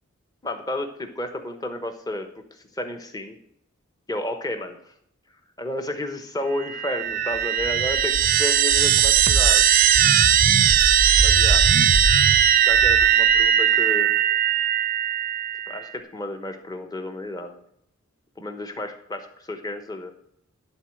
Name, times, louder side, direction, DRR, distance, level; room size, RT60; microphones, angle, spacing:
voice 1, 0.4-3.4 4.1-4.8 5.6-9.6 11.2-11.7 12.6-14.2 15.7-17.6 18.4-20.1, left 1 dB, 15° left, 6 dB, 1.0 m, -32 dB
sound 1, 6.6-15.9, right 9 dB, 40° right, 0.4 m, -18 dB
12.0 x 4.0 x 7.7 m, 0.71 s
head